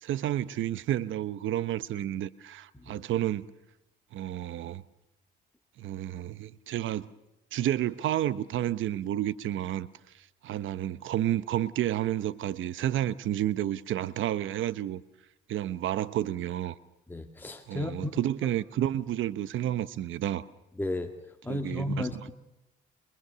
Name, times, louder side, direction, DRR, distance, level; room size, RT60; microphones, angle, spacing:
voice 1, 0.0-3.5 4.1-4.8 5.8-7.1 7.5-9.9 10.4-15.0 15.5-16.8 17.7-20.4 21.5-22.3, right 12 dB, 80° right, 1.0 m, -30 dB
voice 2, 17.1-18.1 20.8-21.1 21.4-22.3, left 1 dB, 10° left, 2.1 m, -33 dB
28.0 x 23.0 x 6.9 m
cardioid pair, 90°, 20 cm